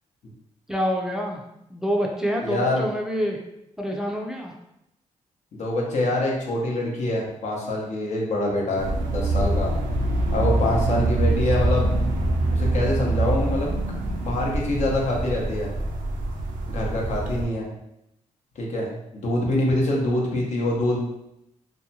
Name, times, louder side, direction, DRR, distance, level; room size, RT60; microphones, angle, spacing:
voice 1, 0.7-3.4 3.8-4.5, equal, 5° right, -1 dB, 0.4 m, -27 dB
voice 2, 2.4-2.9 5.5-9.7 10.3-11.9 12.5-13.7 14.2-15.7 16.7-17.7 18.6-21.0, left 1 dB, 65° left, -2 dB, 0.7 m, -25 dB
sound 1, 8.8-17.4, right 2 dB, 85° right, 0.4 m, -25 dB
2.6 x 2.2 x 2.7 m, 0.84 s
cardioid pair, 70°, 13 cm